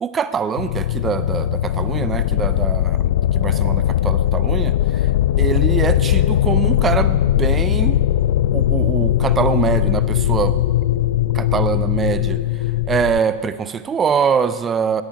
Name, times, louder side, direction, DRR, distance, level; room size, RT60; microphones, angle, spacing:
voice 1, 0.0-3.0 3.3-5.1 5.4-8.0 8.5-10.6 11.3-12.4 12.9-15.0, right 6 dB, 20° right, 13 dB, 0.8 m, -23 dB
sound 1, 0.6-13.2, left 12 dB, 55° left, 0.5 m, -19 dB
19.5 x 14.5 x 5.2 m, 1.4 s
figure-of-eight pair, 90°, 0 cm